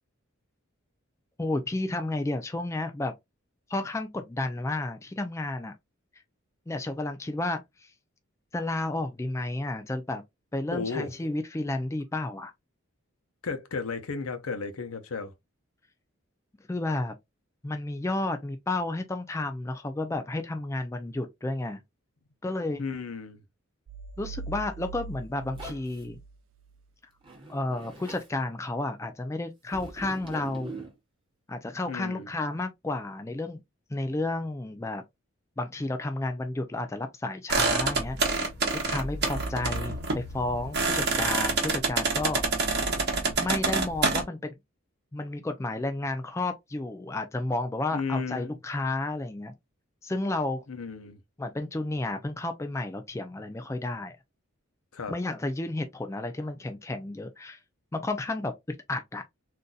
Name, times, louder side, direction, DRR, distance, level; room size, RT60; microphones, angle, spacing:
voice 1, 1.4-3.1 3.7-5.7 6.7-7.9 8.5-10.2 10.5-12.5 16.7-17.1 17.6-21.8 22.4-22.8 24.2-26.2 27.5-30.7 31.5-33.6 33.9-35.0 35.6-38.5 38.9-42.4 43.4-44.6 45.1-49.5 50.0-50.6 51.4-54.2 55.1-57.6 57.9-58.5 58.9-59.2, left 2 dB, 15° left, 0.3 m, -32 dB
voice 2, 10.7-11.1 13.4-15.3 22.8-23.4 31.9-32.3 47.9-48.6 50.7-51.2 54.9-55.1, left 4 dB, 80° left, 0.7 m, -34 dB
sound 1, 23.9-26.8, right 3 dB, 70° right, 0.4 m, -41 dB
Zipper (clothing), 25.6-26.0 27.2-28.3 29.7-30.9, right 2 dB, 25° right, 1.0 m, -42 dB
sound 2, 37.5-44.2, right 3 dB, 50° right, 0.9 m, -27 dB
3.9 x 2.6 x 2.2 m
head